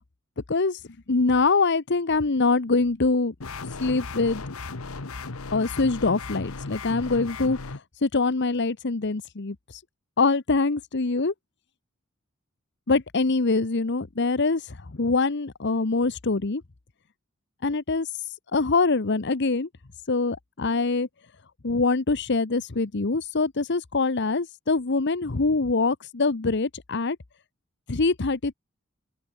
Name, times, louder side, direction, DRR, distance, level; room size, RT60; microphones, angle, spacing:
voice 1, 0.5-0.8 1.1-3.3 3.8-4.4 5.5-7.6 8.0-9.6 10.2-11.3 12.9-14.6 15.0-16.6 17.6-18.1 18.5-19.7 20.1-21.1 21.6-27.2 27.9-28.5, left 3 dB, 55° left, 1.0 m, -24 dB
sound 1, 3.4-7.8, left 3 dB, 85° left, 1.3 m, -36 dB
open air
head